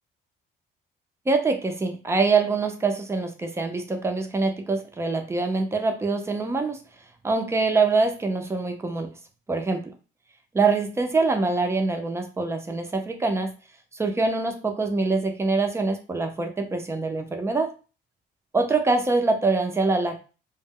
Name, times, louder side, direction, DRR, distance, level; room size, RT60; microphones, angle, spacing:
voice 1, 1.3-6.8 7.2-9.1 9.5-9.9 10.5-13.5 13.9-17.7 18.5-20.2, right 3 dB, 15° right, 5 dB, 0.4 m, -24 dB
2.0 x 2.0 x 3.5 m, 0.34 s
cardioid pair, 125°, 20 cm